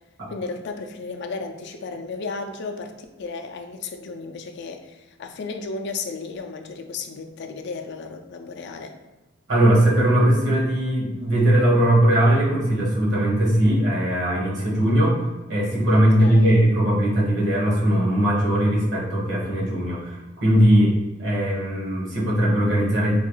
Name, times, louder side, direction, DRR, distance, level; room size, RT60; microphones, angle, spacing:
voice 1, 0.3-8.9 15.9-16.6, left 4 dB, 60° left, 5 dB, 0.4 m, -34 dB
voice 2, 9.5-15.2 15.5-23.2, right 1 dB, 65° right, -4 dB, 1.3 m, -19 dB
4.3 x 2.3 x 3.0 m, 1.2 s
head